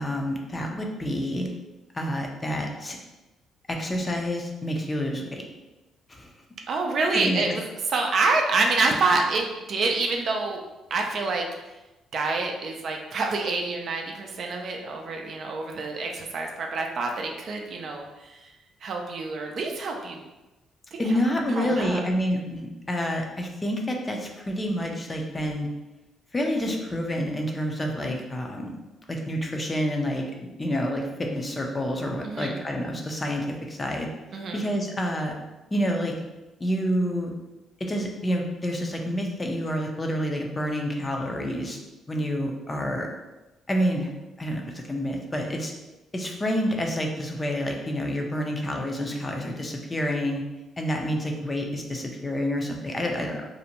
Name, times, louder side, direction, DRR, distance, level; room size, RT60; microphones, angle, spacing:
voice 1, 0.0-1.5 1.9-3.0 3.7-5.4 6.1-6.3 7.1-7.4 21.0-25.7 26.3-28.8 29.1-30.2 30.6-34.1 34.5-35.3 35.7-36.1 36.6-37.3 37.8-41.8 42.1-43.1 43.7-45.7 46.1-50.4 50.8-53.4, equal, 25° left, 1 dB, 0.4 m, -28 dB
voice 2, 6.7-7.6 7.9-10.6 10.9-11.4 12.1-18.4 18.8-20.2 20.9-21.1 21.6-22.0 32.2-32.5 34.3-34.6, right 3 dB, 60° right, 2 dB, 0.4 m, -27 dB
2.6 x 2.1 x 2.8 m, 1.0 s
cardioid pair, 80°, 0 cm